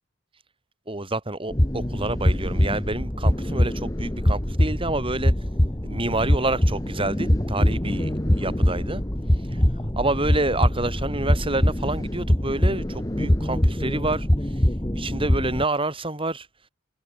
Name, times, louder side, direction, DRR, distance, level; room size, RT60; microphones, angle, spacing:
voice 1, 0.9-5.3 5.8-9.0 10.0-14.3 14.9-16.5, right 2 dB, 25° right, 5.6 m, -28 dB
sound 1, 1.5-15.6, equal, 20° left, 1.4 m, -23 dB
head